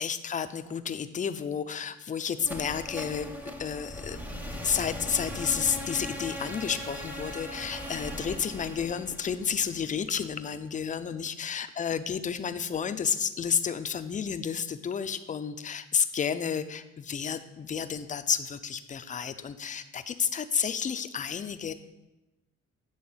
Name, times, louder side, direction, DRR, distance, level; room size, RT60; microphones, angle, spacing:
voice 1, 0.0-3.3 3.6-21.7, left 7 dB, 25° left, 10 dB, 0.4 m, -31 dB
sound 1, 2.4-10.3, left 1 dB, 5° right, 0.8 m, -39 dB
7.8 x 3.6 x 5.6 m, 1.0 s
cardioid pair, 90°, 30 cm